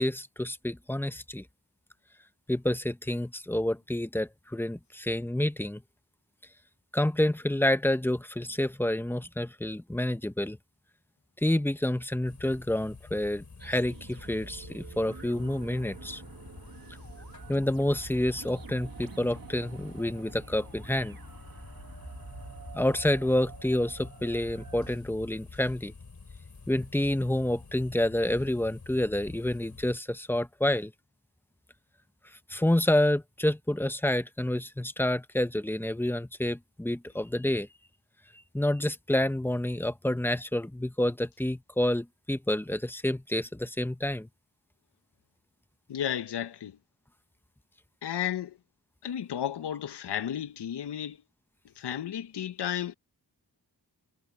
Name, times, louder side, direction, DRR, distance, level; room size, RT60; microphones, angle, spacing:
voice 1, 0.0-1.4 2.5-5.8 6.9-10.6 11.4-16.2 17.5-21.2 22.7-25.9 26.7-30.9 32.5-37.7 38.5-44.3, left 1 dB, 5° left, 0.7 m, -28 dB
sound 1, 12.3-30.0, left 4 dB, 45° left, 3.9 m, -48 dB
sound 2, 13.6-25.0, right 6 dB, 55° right, 1.7 m, -48 dB
voice 2, 45.9-46.8 48.0-48.6 49.0-51.2 51.8-52.9, left 10 dB, 75° left, 0.8 m, -33 dB
wide cardioid pair, 120°, 41 cm